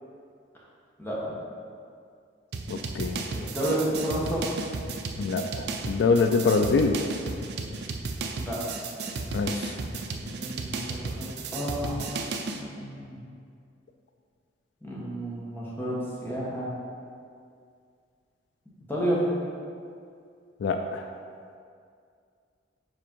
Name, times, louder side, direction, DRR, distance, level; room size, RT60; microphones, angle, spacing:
voice 1, 1.0-1.3 3.3-4.5 8.4-8.6 10.2-12.0 12.6-13.2 14.8-16.7 18.9-19.2, right 1 dB, 10° left, -6 dB, 1.3 m, -31 dB
sound 1, 2.5-12.6, right 3 dB, 60° right, 0.5 m, -34 dB
voice 2, 2.7-3.2 5.2-5.4 5.9-7.0 9.3-9.7 20.6-21.1, left 4 dB, 65° left, 5 dB, 0.3 m, -24 dB
5.1 x 4.4 x 5.3 m, 2.3 s
head